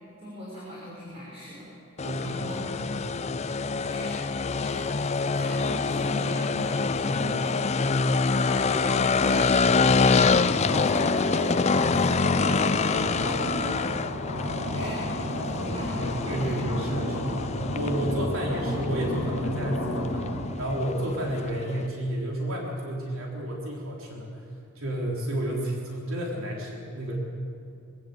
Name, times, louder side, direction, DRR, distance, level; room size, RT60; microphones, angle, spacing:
voice 1, 0.2-2.7 3.9-4.2 4.5-4.9 5.2-7.6 8.4-9.6 9.8-10.3 10.7-13.9 14.7-16.6, equal, 25° right, -7 dB, 6.0 m, -40 dB
sound 1, 2.0-21.9, left 4 dB, 30° left, 0.4 m, -26 dB
voice 2, 2.0-3.6 6.9-7.2 15.9-24.4 24.8-27.2, right 1 dB, 65° right, -2 dB, 3.9 m, -31 dB
sound 2, 10.3-20.5, left 1 dB, 75° left, 4.3 m, -32 dB
25.0 x 16.5 x 8.0 m, 2.6 s
head